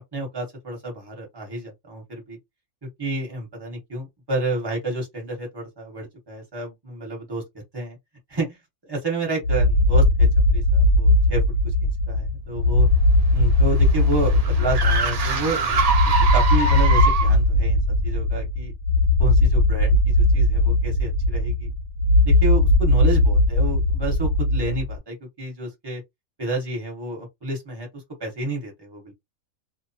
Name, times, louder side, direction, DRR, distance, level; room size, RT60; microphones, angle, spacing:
voice 1, 0.1-2.4 3.0-7.4 7.7-8.0 8.3-8.6 8.8-11.4 11.8-12.9 13.3-15.6 16.3-18.7 19.2-21.7 22.2-26.0 26.4-29.1, right 2 dB, 20° right, 1.2 m, -30 dB
sound 1, 9.4-25.0, left 2 dB, 65° left, 0.8 m, -19 dB
sound 2, 13.0-17.5, right 5 dB, 65° right, 0.3 m, -24 dB
2.6 x 2.2 x 2.7 m
omnidirectional pair, 1.5 m